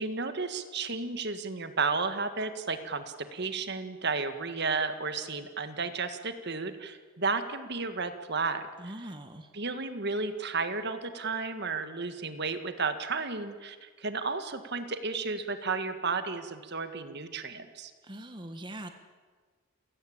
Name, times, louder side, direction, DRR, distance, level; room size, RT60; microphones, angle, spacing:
voice 1, 0.0-9.1 9.5-17.9, right 4 dB, 50° right, 9 dB, 1.8 m, -33 dB
voice 2, 8.8-9.5 18.0-18.9, right 1 dB, 20° right, 6 dB, 1.5 m, -42 dB
29.0 x 17.5 x 8.8 m, 1.5 s
head